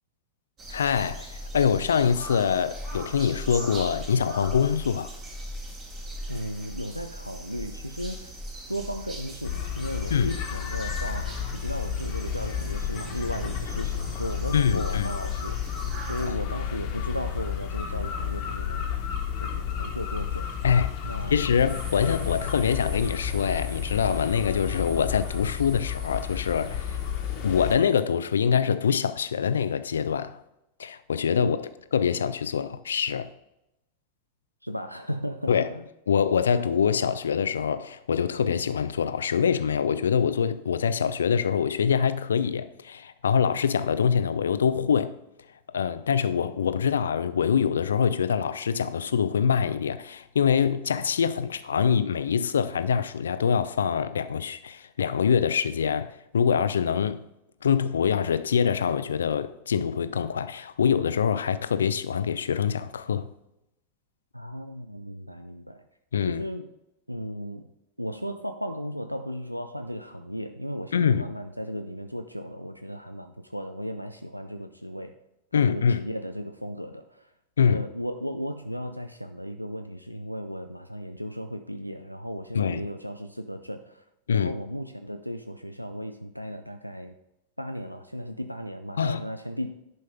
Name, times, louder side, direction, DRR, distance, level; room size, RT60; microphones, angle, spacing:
sound 1, 0.6-16.3, equal, 30° right, 2.6 m, -39 dB
voice 1, 0.7-5.2 10.1-10.4 14.5-15.1 16.3-16.4 20.6-20.9 21.3-27.0 27.4-30.4 30.8-33.3 35.5-35.7 36.1-45.2 45.7-57.2 57.6-63.3 66.1-66.4 70.9-71.2 75.5-76.1 77.6-77.8 82.5-82.8 84.3-84.5 89.0-89.2, left 7 dB, 70° left, 0.5 m, -24 dB
voice 2, 6.3-8.4 8.7-18.9 19.4-20.5 21.0-21.4 31.4-31.6 34.6-35.8 64.3-65.9 66.2-66.7 67.1-67.7 68.0-75.1 75.5-77.3 77.7-84.0 84.3-87.1 87.6-89.7, equal, 90° right, 0.4 m, -35 dB
sound 2, 9.4-27.8, left 9 dB, 45° left, 1.3 m, -32 dB
sound 3, 21.7-28.3, right 2 dB, 70° right, 1.8 m, -46 dB
10.5 x 5.4 x 3.6 m
figure-of-eight pair, 90°, 0 cm